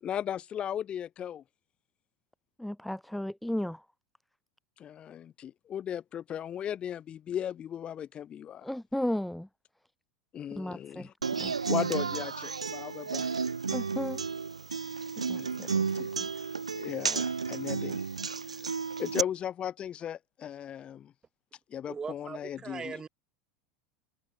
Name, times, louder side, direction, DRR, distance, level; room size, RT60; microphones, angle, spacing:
voice 1, 0.0-1.4 4.8-8.7 10.3-11.1 11.7-13.3 15.3-15.6 16.0-16.1 16.7-18.0 19.0-21.1 21.7-23.0, left 9 dB, 35° left, 1.9 m, -36 dB
voice 2, 2.6-3.8 8.6-9.5 10.5-11.1 11.4-11.5 13.7-14.2 15.3-15.8, left 1 dB, 5° left, 0.9 m, -34 dB
Human voice / Acoustic guitar, 11.2-19.2, right 5 dB, 85° right, 0.6 m, -32 dB
voice 3, 21.9-23.1, right 5 dB, 20° right, 3.7 m, -40 dB
figure-of-eight pair, 80°, 3 cm